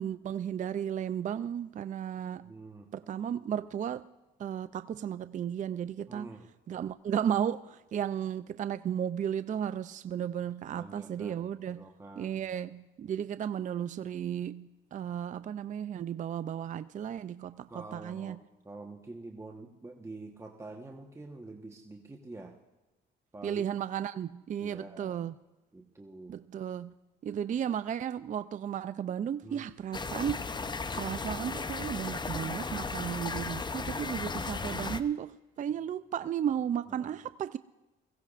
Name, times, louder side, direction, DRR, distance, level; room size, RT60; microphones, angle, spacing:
voice 1, 0.0-2.5 2.9-4.1 4.4-6.3 6.7-11.9 12.2-18.4 23.4-25.3 26.3-26.9 27.2-30.4 31.0-37.6, right 9 dB, 40° right, 0.4 m, -34 dB
voice 2, 2.4-2.9 6.1-6.5 10.8-12.4 17.7-22.6 23.3-23.7 24.6-25.2 25.7-26.4 27.5-27.6 29.4-29.7 35.7-35.8 36.5-36.6 36.9-37.2, right 2 dB, 15° right, 1.2 m, -47 dB
sound 1, 29.9-35.0, left 4 dB, 20° left, 0.6 m, -35 dB
22.0 x 16.5 x 2.5 m
cardioid pair, 90°, 20 cm